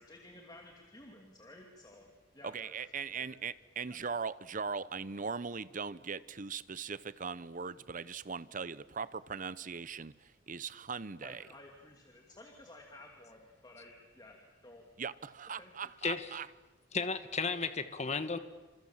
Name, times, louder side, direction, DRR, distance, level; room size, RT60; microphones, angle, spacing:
voice 1, 0.0-2.7 3.1-3.4 3.9-4.0 11.2-14.8 15.6-15.9, left 2 dB, 20° left, 2.6 m, -54 dB
voice 2, 2.4-11.4 15.0-16.5, right 5 dB, 45° right, 0.8 m, -40 dB
voice 3, 16.9-18.4, left 4 dB, 35° left, 1.4 m, -34 dB
29.0 x 27.5 x 7.4 m
head